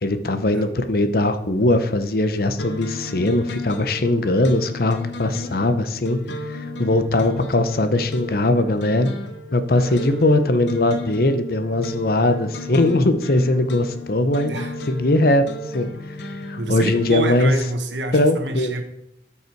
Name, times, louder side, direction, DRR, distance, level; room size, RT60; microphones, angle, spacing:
voice 1, 0.0-6.2 6.5-9.1 9.5-14.5 14.9-15.5 15.7-15.9 16.2-17.5 18.1-18.8, left 2 dB, 55° left, 10 dB, 0.8 m, -20 dB
sound 1, 2.6-17.4, left 2 dB, 85° left, 1.1 m, -34 dB
voice 2, 9.8-10.3 14.4-14.8 16.6-18.8, right 2 dB, 90° right, 6 dB, 1.4 m, -28 dB
13.0 x 5.5 x 4.6 m, 0.79 s
head